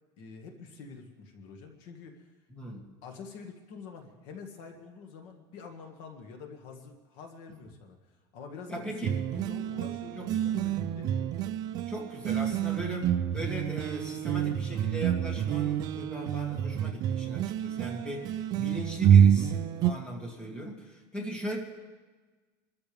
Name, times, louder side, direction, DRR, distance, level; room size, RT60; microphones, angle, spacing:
voice 1, 0.2-2.3 3.0-8.0 8.3-11.3, left 5 dB, 60° left, 4 dB, 1.9 m, -46 dB
voice 2, 2.5-2.9 8.7-9.2 10.2-10.6 11.9-21.6, equal, 10° left, -1 dB, 2.5 m, -39 dB
sound 1, 9.0-19.9, right 9 dB, 40° right, 0.6 m, -27 dB
26.5 x 14.0 x 3.5 m, 1.3 s
cardioid pair, 160°, 10 cm